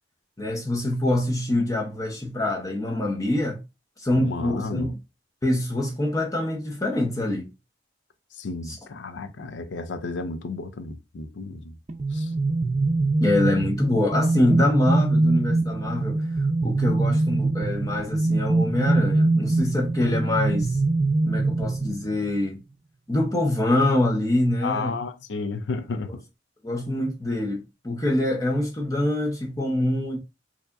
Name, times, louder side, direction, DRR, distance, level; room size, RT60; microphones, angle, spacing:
voice 1, 0.4-3.6 4.0-5.0 5.4-7.5 8.7-8.8 13.2-16.2 16.6-20.8 21.2-22.6 23.1-24.9 26.6-30.2, left 1 dB, 20° left, 0.7 m, -25 dB
voice 2, 4.2-4.9 8.3-11.8 12.1-12.3 24.6-26.2, left 3 dB, 70° left, 0.5 m, -32 dB
sound 1, 11.9-22.4, right 2 dB, 40° right, 0.5 m, -23 dB
4.7 x 2.8 x 2.4 m
head